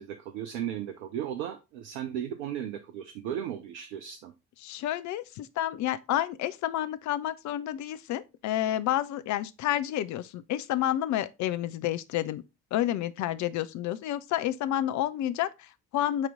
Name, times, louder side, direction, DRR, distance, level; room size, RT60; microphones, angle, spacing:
voice 1, 0.0-4.3, right 10 dB, 75° right, 0.7 m, -35 dB
voice 2, 4.6-12.4 12.7-16.3, left 12 dB, 55° left, 0.6 m, -30 dB
8.8 x 3.0 x 3.7 m
figure-of-eight pair, 45°, 35 cm